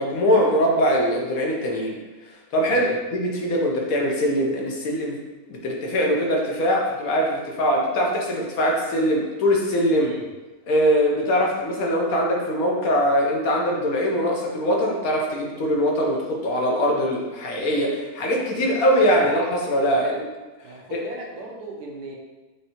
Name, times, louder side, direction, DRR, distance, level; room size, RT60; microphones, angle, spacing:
voice 1, 0.0-2.0 2.5-5.2 5.5-10.1 10.7-20.2 20.9-21.0, equal, 65° left, -1 dB, 1.2 m, -22 dB
voice 2, 20.6-22.1, right 3 dB, 85° right, 0 dB, 1.3 m, -37 dB
6.5 x 2.7 x 2.9 m, 1.2 s
omnidirectional pair, 1.7 m